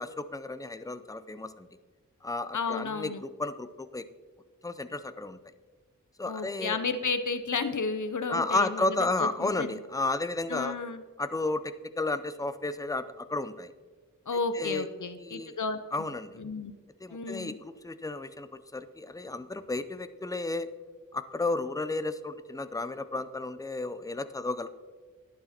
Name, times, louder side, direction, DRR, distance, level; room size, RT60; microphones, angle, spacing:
voice 1, 0.0-1.7 2.2-4.1 4.6-5.4 6.2-6.8 8.3-10.7 11.2-13.7 14.5-14.9 15.2-15.5 15.9-16.4 17.0-20.7 21.1-24.7, left 2 dB, 10° left, 12 dB, 0.6 m, -32 dB
voice 2, 2.5-3.2 6.3-8.8 9.2-9.8 10.5-11.0 14.3-16.1 16.4-16.7 17.1-17.5, left 4 dB, 65° left, 10 dB, 0.8 m, -32 dB
11.5 x 9.6 x 4.4 m, 1.4 s
wide cardioid pair, 45°, 33 cm